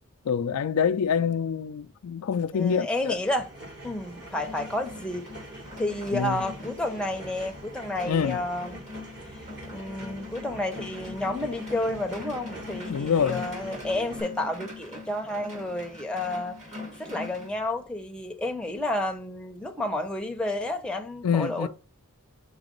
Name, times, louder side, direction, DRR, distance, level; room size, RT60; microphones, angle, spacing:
voice 1, 0.2-3.2 6.1-6.4 8.0-8.4 12.9-13.4 21.2-21.7, left 7 dB, 85° left, 0.4 m, -26 dB
voice 2, 2.5-3.5 3.8-5.3 5.8-8.8 9.7-16.6 17.0-21.7, left 1 dB, 5° left, 0.9 m, -31 dB
sound 1, 3.2-14.2, right 1 dB, 50° right, 3.9 m, -44 dB
sound 2, 4.1-17.5, left 3 dB, 35° right, 2.1 m, -42 dB
5.2 x 3.9 x 5.3 m
head